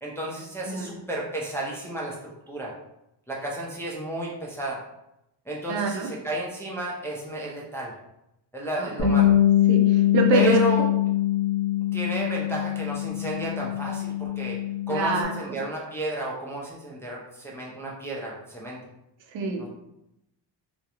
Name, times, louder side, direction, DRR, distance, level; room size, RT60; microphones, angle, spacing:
voice 1, 0.0-2.7 3.3-4.8 5.5-7.9 8.5-9.3 10.3-10.8 11.9-14.6 14.9-18.8 19.6-19.7, right 1 dB, 5° left, -4 dB, 0.3 m, -32 dB
voice 2, 5.7-6.1 8.8-8.9 9.7-10.5 14.9-15.3 19.3-19.6, right 3 dB, 75° right, 3 dB, 0.6 m, -25 dB
Bass guitar, 9.0-15.2, left 12 dB, 55° left, 0.7 m, -23 dB
2.3 x 2.0 x 2.8 m, 0.85 s
cardioid pair, 125°, 45 cm